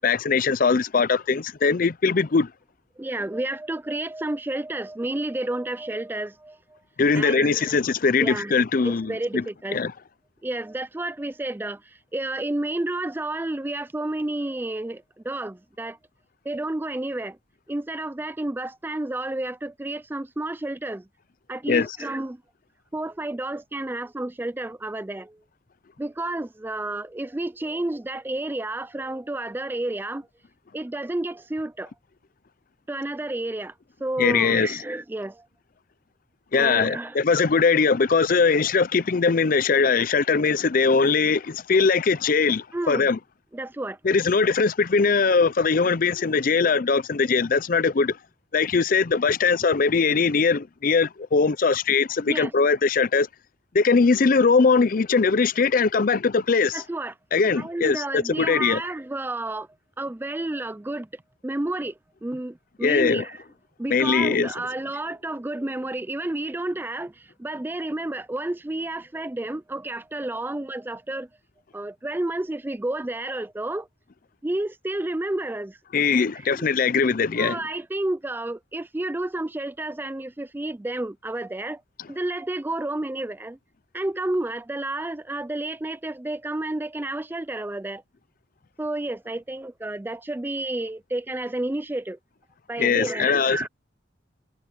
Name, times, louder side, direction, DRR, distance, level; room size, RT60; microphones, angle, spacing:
voice 1, 0.0-2.5 7.0-9.4 9.7-9.9 21.7-21.9 34.2-34.8 36.5-43.2 44.0-48.2 48.5-53.3 53.7-56.8 57.3-58.8 62.8-63.2 63.9-64.5 75.9-77.6 92.8-93.6, left 5 dB, 45° left, 0.5 m, -21 dB
voice 2, 3.0-6.8 7.1-7.8 8.2-8.5 8.8-9.8 10.4-16.0 16.4-17.4 17.7-21.1 21.5-22.4 22.9-25.4 26.0-30.3 30.7-31.9 32.9-33.7 34.0-35.5 36.6-37.2 42.7-43.1 43.5-44.0 46.6-46.7 52.3-52.5 56.7-57.1 57.6-59.7 60.0-63.4 63.8-71.3 71.7-73.9 74.4-75.8 76.5-76.7 77.4-81.8 82.1-83.6 83.9-88.0 88.8-92.2 92.7-93.7, right 2 dB, 10° right, 0.4 m, -31 dB
head